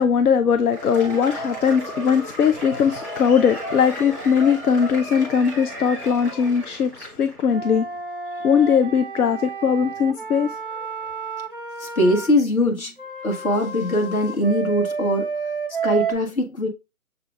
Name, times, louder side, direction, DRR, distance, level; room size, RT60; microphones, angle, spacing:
voice 1, 0.0-7.9 8.4-10.9, left 7 dB, 85° left, 0.6 m, -20 dB
Cheering / Applause / Crowd, 0.6-7.4, right 1 dB, 10° left, 1.2 m, -34 dB
Wind instrument woodwind instrument, 7.5-12.3 13.0-16.1, right 5 dB, 35° right, 0.5 m, -30 dB
voice 2, 11.8-12.9 13.2-15.3 15.8-16.7, left 1 dB, 65° left, 1.6 m, -21 dB
6.7 x 2.9 x 2.4 m
hypercardioid pair, 165°, 45 cm